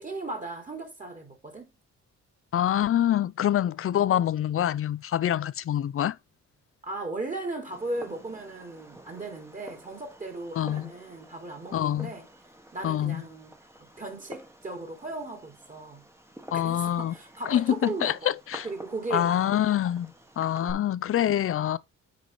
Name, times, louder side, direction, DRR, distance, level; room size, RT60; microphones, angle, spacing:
voice 1, 0.0-1.7 6.8-12.3 12.7-13.5 14.0-16.0 16.5-18.3 18.6-19.8 20.6-20.9, right 2 dB, 25° right, 3.3 m, -37 dB
voice 2, 2.5-6.2 10.6-10.9 11.7-12.1 12.8-13.2 16.5-17.1 17.5-18.7 19.1-20.1 20.4-21.8, left 11 dB, 45° left, 0.6 m, -25 dB
Fireworks, 7.7-20.7, right 1 dB, 10° right, 1.6 m, -49 dB
8.4 x 4.8 x 4.6 m
cardioid pair, 90°, 30 cm